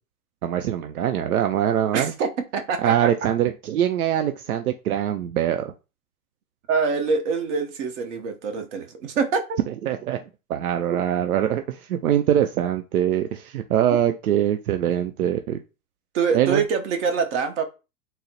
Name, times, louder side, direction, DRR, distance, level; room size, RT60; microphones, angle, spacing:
voice 1, 0.4-2.1 2.8-5.7 9.7-10.2 10.5-15.6 16.3-16.6, right 10 dB, 85° right, 0.5 m, -23 dB
voice 2, 1.9-3.1 6.7-9.6 16.1-17.6, right 5 dB, 55° right, 1.0 m, -25 dB
3.9 x 2.0 x 4.0 m
hypercardioid pair, 120°, 42 cm